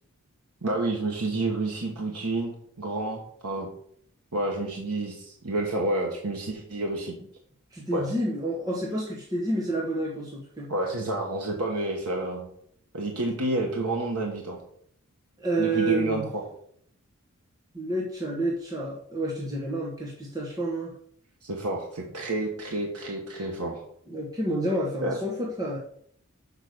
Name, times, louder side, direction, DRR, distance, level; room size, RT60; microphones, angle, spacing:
voice 1, 0.6-2.5 2.8-3.7 4.3-7.1 7.9-8.0 10.7-12.5 12.9-14.6 15.6-16.4 21.4-23.8 25.0-25.2, right 2 dB, 85° right, 0 dB, 1.3 m, -29 dB
voice 2, 7.7-10.7 15.4-16.3 17.7-20.9 24.1-25.8, right 1 dB, 15° right, -3 dB, 1.1 m, -29 dB
6.6 x 4.9 x 6.6 m, 0.66 s
head